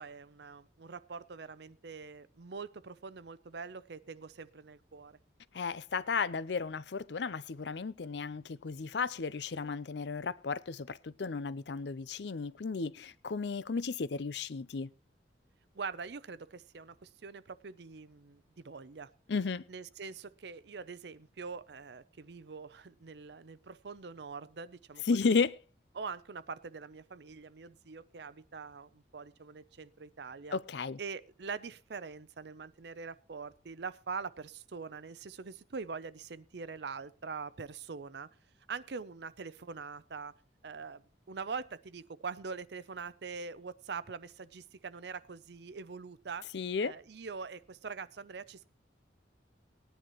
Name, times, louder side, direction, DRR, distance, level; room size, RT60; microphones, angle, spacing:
voice 1, 0.0-5.2 15.8-19.1 19.7-25.4 25.9-30.6 31.0-38.3 38.7-40.3 40.6-46.5 46.8-48.7, right 5 dB, 65° right, 0.6 m, -43 dB
voice 2, 5.5-14.9 19.3-19.6 25.1-25.6 30.5-31.0 46.5-46.9, left 4 dB, 70° left, 0.5 m, -33 dB
19.0 x 10.0 x 3.0 m
head